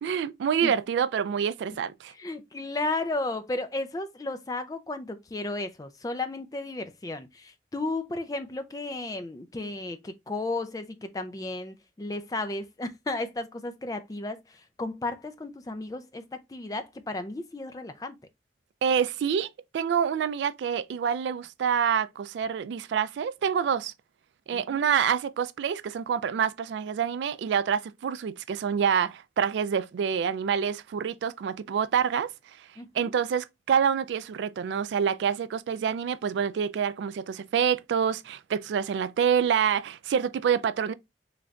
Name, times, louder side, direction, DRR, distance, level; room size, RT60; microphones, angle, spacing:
voice 1, 0.0-2.1 18.8-23.9 24.5-32.7 32.9-40.9, right 7 dB, 85° right, 0.3 m, -27 dB
voice 2, 2.2-18.2 24.5-24.9 32.8-33.1, left 2 dB, 20° left, 0.4 m, -34 dB
3.9 x 3.2 x 2.4 m
head